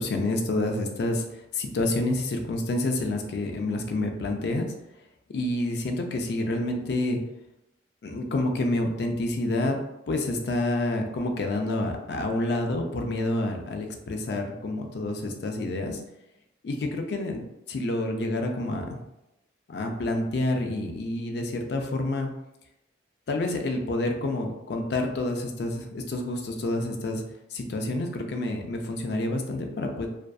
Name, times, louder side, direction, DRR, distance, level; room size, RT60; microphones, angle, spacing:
voice 1, 0.0-4.7 5.3-7.2 8.0-9.8 10.1-16.0 16.6-19.0 19.7-22.3 23.3-27.2 27.5-30.1, left 2 dB, 60° left, 3 dB, 0.4 m, -28 dB
2.5 x 2.3 x 2.2 m, 0.89 s
head